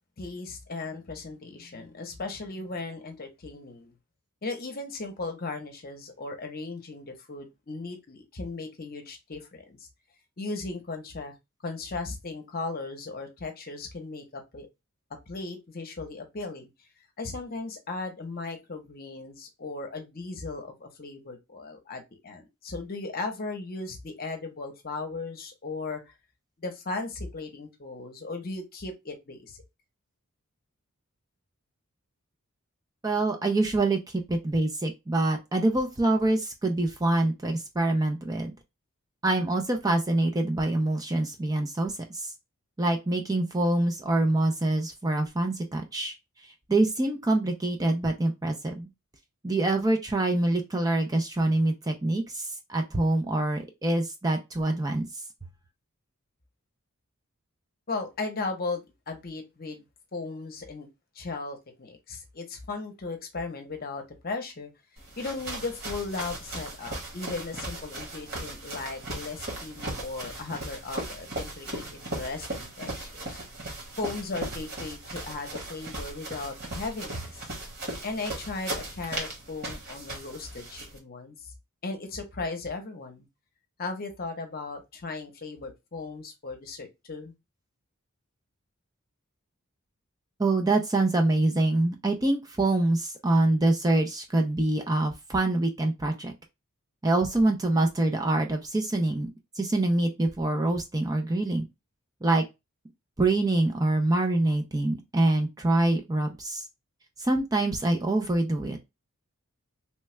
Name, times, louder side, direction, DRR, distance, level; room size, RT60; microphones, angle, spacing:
voice 1, 0.2-3.9 4.4-9.9 10.4-11.3 11.6-14.7 15.3-16.7 17.2-26.1 26.6-29.6 57.9-59.9 60.1-60.9 61.1-64.7 65.2-73.4 74.0-77.2 78.0-81.5 81.8-83.3 83.8-87.3, left 3 dB, 45° left, 0.8 m, -37 dB
voice 2, 33.0-38.5 39.2-42.3 42.8-46.1 46.7-48.9 49.4-55.1 90.4-96.3 97.0-99.3 99.6-101.6 102.2-102.4 103.2-106.6 107.2-108.8, right 2 dB, 15° right, 0.5 m, -25 dB
sound 1, 65.0-81.0, right 1 dB, 45° right, 1.4 m, -37 dB
3.2 x 2.3 x 3.0 m
head